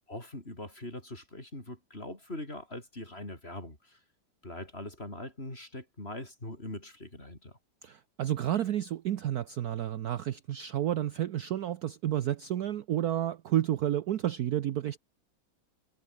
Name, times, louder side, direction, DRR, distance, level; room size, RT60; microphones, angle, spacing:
voice 1, 0.1-4.0 4.4-7.6, left 1 dB, 30° left, 6.9 m, -42 dB
voice 2, 7.8-15.0, right 11 dB, 60° right, 1.1 m, -31 dB
omnidirectional pair, 2.1 m